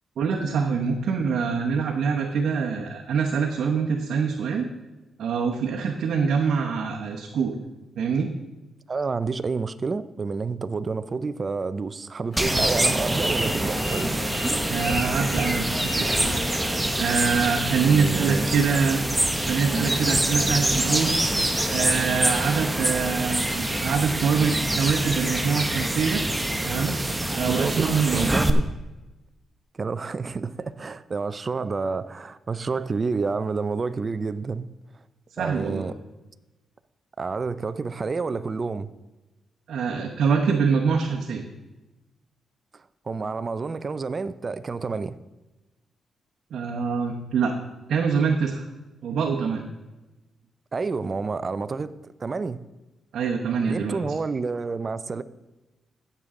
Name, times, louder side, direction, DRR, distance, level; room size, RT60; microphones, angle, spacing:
voice 1, 0.2-4.7 5.2-7.5 8.0-8.3 14.7-16.1 17.0-19.0 19.5-21.1 21.7-26.2 26.6-26.9 27.3-28.3 35.4-35.8 39.7-41.4 46.5-47.6 47.9-48.7 49.0-49.7 53.1-54.0, right 5 dB, 75° right, 1.0 m, -24 dB
voice 2, 8.9-14.1 17.8-18.6 27.4-28.6 29.7-34.7 35.4-36.0 37.2-38.9 42.7-45.2 50.7-52.6 53.7-55.2, right 4 dB, 35° right, 0.5 m, -29 dB
sound 1, 12.3-22.0, left 1 dB, 25° left, 3.5 m, -35 dB
sound 2, 12.4-28.5, right 1 dB, 10° right, 0.8 m, -25 dB
16.0 x 6.8 x 3.8 m
cardioid pair, 100°, 0 cm